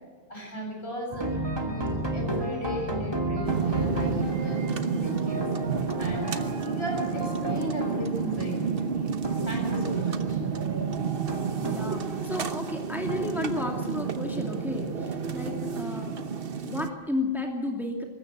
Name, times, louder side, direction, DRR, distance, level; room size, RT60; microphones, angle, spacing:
voice 1, 0.3-5.4 6.0-9.1 9.5-10.4, equal, 65° left, 1 dB, 7.3 m, -36 dB
sound 1, 1.1-14.7, right 1 dB, 20° right, 2.5 m, -34 dB
sound 2, 3.5-16.9, right 6 dB, 55° right, 1.2 m, -30 dB
voice 2, 11.6-16.1 16.6-18.0, left 2 dB, ahead, 1 dB, 2.6 m, -32 dB
24.5 x 13.5 x 8.1 m, 1.3 s
omnidirectional pair, 1.1 m